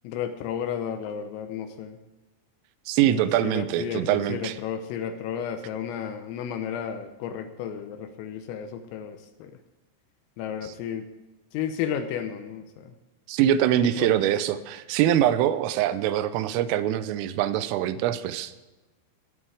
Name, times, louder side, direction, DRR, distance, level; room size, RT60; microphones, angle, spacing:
voice 1, 0.1-2.0 3.1-9.5 10.4-11.1 11.5-12.9 13.8-14.1, left 8 dB, 80° left, 6 dB, 3.5 m, -33 dB
voice 2, 2.9-4.6 13.3-18.6, right 11 dB, 85° right, 12 dB, 3.2 m, -24 dB
19.5 x 8.0 x 4.8 m, 1.1 s
omnidirectional pair, 6.0 m